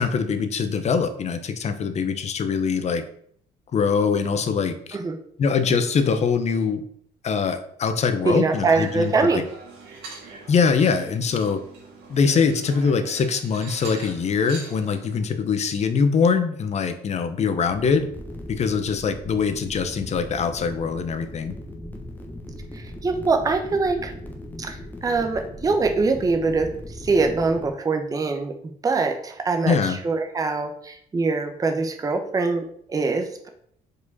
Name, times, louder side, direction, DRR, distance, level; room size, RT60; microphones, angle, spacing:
voice 1, 0.0-3.0 3.7-5.0 5.4-6.8 7.2-9.4 10.5-11.6 12.1-18.0 18.5-21.5 29.6-30.0, left 5 dB, 40° left, 9 dB, 0.8 m, -23 dB
voice 2, 8.2-9.4 22.7-24.1 24.6-28.5 28.8-33.5, right 3 dB, 20° right, 5 dB, 0.7 m, -23 dB
sound 1, 8.5-15.2, right 4 dB, 85° right, 1.7 m, -42 dB
sound 2, 17.7-27.7, left 1 dB, 10° left, 1.0 m, -38 dB
5.0 x 4.6 x 4.1 m, 0.64 s
cardioid pair, 110°, 17 cm